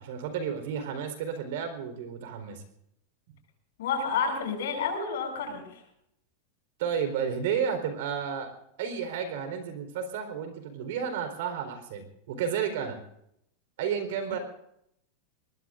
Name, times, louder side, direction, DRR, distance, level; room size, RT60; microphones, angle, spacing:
voice 1, 0.0-2.6 6.8-8.5 8.8-13.0 13.8-14.4, right 7 dB, 60° right, 8 dB, 4.2 m, -32 dB
voice 2, 3.8-5.7, left 5 dB, 80° left, 3 dB, 7.9 m, -29 dB
24.0 x 20.5 x 2.6 m, 0.76 s
supercardioid pair, 175°, 0 cm